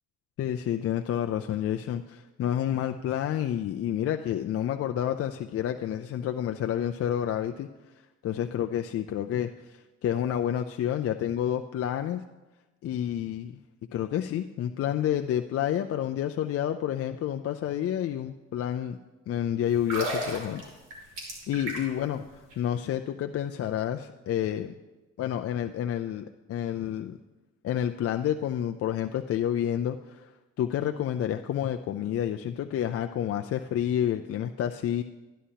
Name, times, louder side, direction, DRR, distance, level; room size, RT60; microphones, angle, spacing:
voice 1, 0.4-7.7 8.2-12.2 12.8-13.6 13.9-19.0 19.3-20.6 21.5-22.2 22.6-24.7 25.2-27.2 27.6-30.3 30.6-35.0, left 10 dB, 50° left, 5 dB, 0.4 m, -29 dB
sound 1, 19.7-22.1 22.4-22.5, right 1 dB, 85° right, 2.9 m, -34 dB
12.5 x 10.0 x 2.8 m, 1.1 s
cardioid pair, 90°, 30 cm